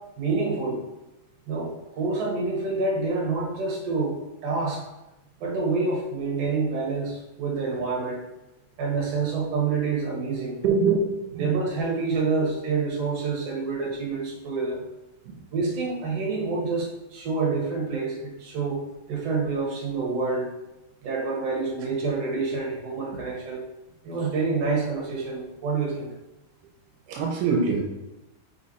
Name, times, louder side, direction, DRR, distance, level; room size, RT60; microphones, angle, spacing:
voice 1, 0.2-0.8 1.5-4.2 4.4-4.8 5.4-8.2 8.8-10.6 11.4-14.8 15.5-18.8 19.1-20.5 21.0-23.7 24.0-26.1, right 4 dB, 55° right, -3 dB, 2.3 m, -27 dB
voice 2, 10.6-11.5 12.4-12.5 15.3-15.4 27.1-27.8, right 4 dB, 80° right, 1 dB, 2.3 m, -24 dB
5.1 x 4.7 x 4.1 m, 0.99 s
omnidirectional pair, 3.8 m